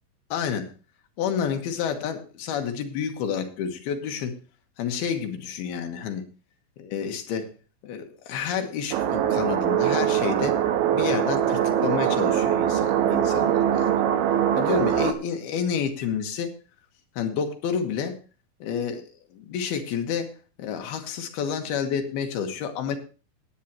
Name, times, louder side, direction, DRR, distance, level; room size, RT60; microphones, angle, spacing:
voice 1, 0.3-0.7 1.2-4.3 4.8-6.3 6.8-7.5 7.8-10.5 10.9-13.9 14.5-16.5 17.2-18.2 18.6-19.0 19.3-20.3 20.6-23.0, left 7 dB, 85° left, 5 dB, 3.3 m, -29 dB
sound 1, 8.9-15.1, right 10 dB, 80° right, 2.8 m, -22 dB
18.5 x 9.0 x 2.9 m, 0.34 s
omnidirectional pair, 4.4 m